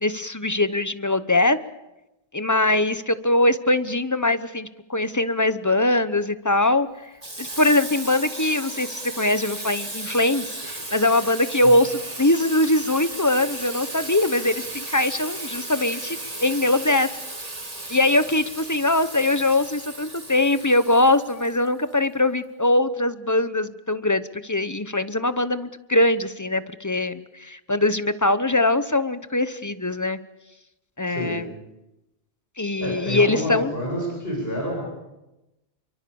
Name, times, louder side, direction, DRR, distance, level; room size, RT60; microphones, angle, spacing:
voice 1, 0.0-1.6 2.3-6.9 7.4-17.1 17.9-30.2 31.0-31.4 32.6-33.7, left 2 dB, 20° left, 12 dB, 0.9 m, -22 dB
Water tap faucet / Sink (filling or washing), 7.2-22.0, right 2 dB, 35° right, 2.5 m, -35 dB
voice 2, 31.0-31.4 32.8-34.9, left 1 dB, 60° left, -1 dB, 8.2 m, -28 dB
28.5 x 24.0 x 7.1 m, 0.97 s
omnidirectional pair, 1.1 m